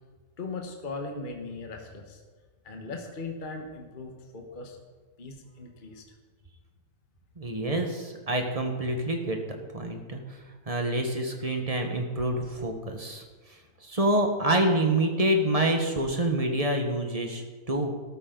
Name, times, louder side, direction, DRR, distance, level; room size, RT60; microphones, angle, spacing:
voice 1, 0.4-2.2 2.6-4.8 5.2-6.0 11.5-11.6, left 3 dB, 30° left, 3 dB, 1.3 m, -39 dB
voice 2, 7.4-9.4 9.7-10.2 10.7-13.2 13.8-17.9, right 1 dB, 25° right, 3 dB, 1.3 m, -27 dB
13.0 x 13.0 x 3.9 m, 1.4 s
omnidirectional pair, 1.8 m